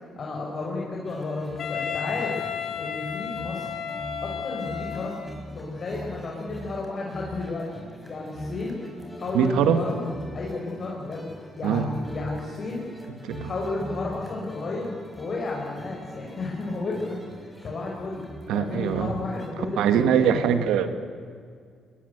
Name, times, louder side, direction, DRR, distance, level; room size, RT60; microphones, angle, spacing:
voice 1, 0.2-2.4 2.8-3.7 4.2-5.2 5.5-7.7 8.1-8.8 9.1-10.0 10.3-11.3 11.6-12.8 13.4-18.2 18.5-20.5, left 3 dB, 45° left, -2 dB, 4.7 m, -32 dB
sound 1, 1.0-19.5, equal, 5° left, 5.4 m, -42 dB
Wind instrument woodwind instrument, 1.6-5.4, left 8 dB, 65° left, 2.0 m, -33 dB
voice 2, 9.3-9.8 11.6-11.9 13.2-13.5 18.5-19.1 19.8-20.9, right 8 dB, 90° right, 9 dB, 1.8 m, -22 dB
21.0 x 21.0 x 8.1 m, 2.1 s
cardioid pair, 90°, 0 cm